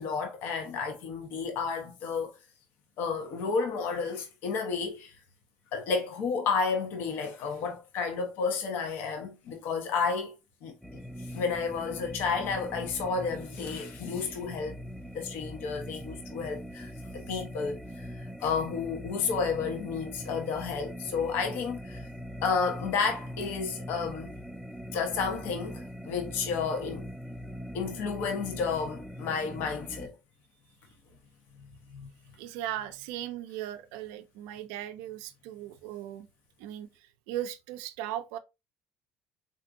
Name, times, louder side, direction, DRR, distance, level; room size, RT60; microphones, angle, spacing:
voice 1, 0.0-2.3 3.0-5.1 5.7-10.3 10.6-10.7 11.3-14.8 15.1-17.8 18.1-22.1 22.4-24.4 24.9-27.1 27.7-30.1 31.9-32.1, left 5 dB, 70° left, 0.8 m, -31 dB
sound 1, 10.8-30.1, equal, ahead, 0.3 m, -42 dB
voice 2, 32.4-36.3 36.6-38.4, right 12 dB, 85° right, 0.4 m, -38 dB
3.5 x 2.6 x 2.5 m
supercardioid pair, 90°, 4 cm